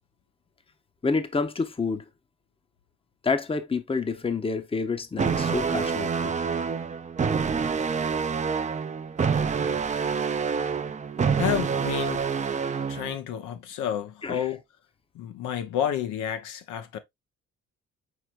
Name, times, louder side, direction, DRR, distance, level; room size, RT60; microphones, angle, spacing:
voice 1, 1.0-2.0 3.2-6.3 14.2-14.5, left 4 dB, 20° left, 0.7 m, -28 dB
sound 1, 5.2-13.2, right 6 dB, 25° right, 0.5 m, -27 dB
voice 2, 11.4-12.3 12.9-14.6 15.1-17.0, left 9 dB, 85° left, 0.8 m, -30 dB
4.7 x 4.4 x 2.4 m
cardioid pair, 90°, 30 cm